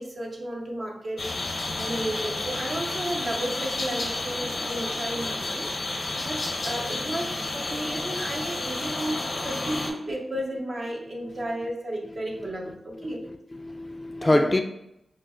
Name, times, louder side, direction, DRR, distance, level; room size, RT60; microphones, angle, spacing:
voice 1, 0.0-13.3 14.2-14.5, right 1 dB, 60° right, -1 dB, 0.8 m, -33 dB
sound 1, 1.2-9.9, left 2 dB, 70° left, 0.7 m, -31 dB
voice 2, 12.7-14.6, left 1 dB, 25° left, 5 dB, 0.3 m, -26 dB
5.5 x 2.1 x 2.4 m, 0.83 s
cardioid pair, 50°, 0 cm